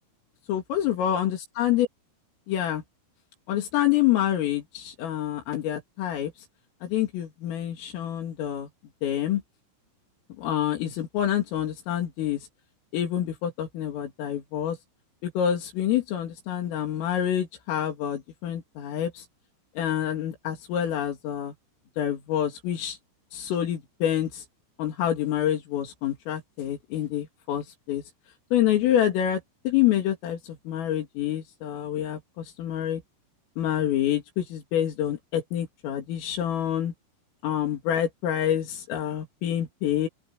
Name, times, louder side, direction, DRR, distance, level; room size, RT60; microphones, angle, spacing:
voice 1, 0.5-1.9 2.5-2.8 3.5-6.3 6.8-8.7 9.0-9.4 10.4-12.5 12.9-14.8 15.2-19.3 19.8-21.5 22.0-23.0 23.3-24.5 24.8-28.0 28.5-33.0 33.6-36.9 37.4-40.1, left 11 dB, 80° left, 5.5 m, -27 dB
open air
omnidirectional pair, 5.8 m